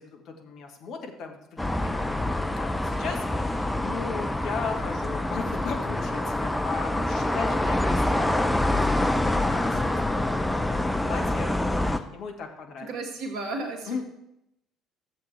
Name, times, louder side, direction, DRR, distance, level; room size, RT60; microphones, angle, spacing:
voice 1, 0.0-11.5 11.8-12.9 13.9-14.0, left 5 dB, 50° left, 3 dB, 1.4 m, -37 dB
sound 1, 1.6-12.0, left 1 dB, 10° left, 0.7 m, -26 dB
voice 2, 12.8-14.0, right 2 dB, 55° right, 3 dB, 1.7 m, -33 dB
13.5 x 7.4 x 3.3 m, 0.83 s
figure-of-eight pair, 55°, 0 cm